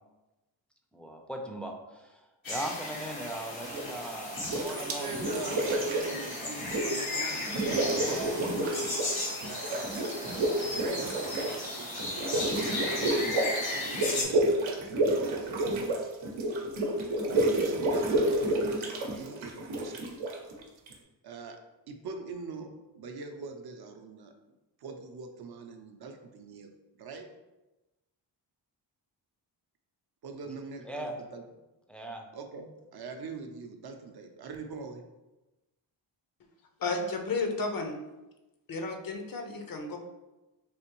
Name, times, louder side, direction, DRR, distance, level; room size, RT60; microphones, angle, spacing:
voice 1, 0.9-2.2 2.5-5.2 7.9-8.4 30.8-31.1 31.9-32.3, right 1 dB, 5° left, 2 dB, 0.4 m, -39 dB
sound 1, 2.4-14.2, left 2 dB, 85° left, 1.4 m, -35 dB
bubbling liquid, 3.6-4.0 4.4-7.1 7.4-9.2 9.4-20.9, right 1 dB, 85° right, 0.7 m, -30 dB
voice 2, 4.7-8.6 9.4-12.5 12.7-16.1 17.2-18.3 19.2-20.1 21.2-21.6 21.9-22.7 23.0-24.3 24.8-26.7 27.0-27.2 30.2-31.4 32.3-35.0, right 4 dB, 55° right, 5 dB, 0.5 m, -43 dB
voice 3, 36.8-38.0 38.7-40.0, left 3 dB, 50° left, 4 dB, 0.6 m, -32 dB
3.4 x 2.9 x 3.0 m, 1.0 s
cardioid pair, 85°, 46 cm